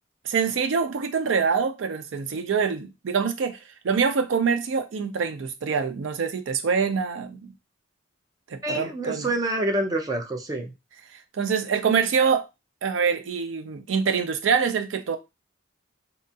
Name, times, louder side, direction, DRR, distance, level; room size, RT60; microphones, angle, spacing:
voice 1, 0.2-7.5 8.5-9.3 11.3-12.5 12.8-15.2, right 6 dB, 85° right, 0.4 m, -25 dB
voice 2, 8.6-10.7, right 1 dB, 20° right, 0.4 m, -27 dB
2.8 x 2.2 x 2.6 m
head